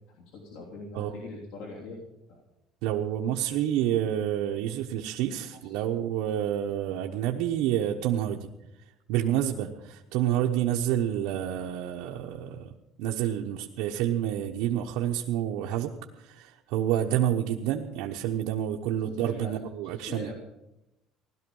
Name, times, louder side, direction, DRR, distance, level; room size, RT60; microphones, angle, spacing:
voice 1, 0.1-2.0 2.3-2.4 5.6-6.0 7.0-7.1 19.0-20.3, left 3 dB, 75° left, -2 dB, 3.2 m, -43 dB
voice 2, 2.8-8.5 9.1-12.7 13.0-20.3, right 11 dB, 75° right, 0 dB, 1.0 m, -28 dB
17.0 x 12.0 x 5.5 m, 0.89 s
cardioid pair, 160°, 0 cm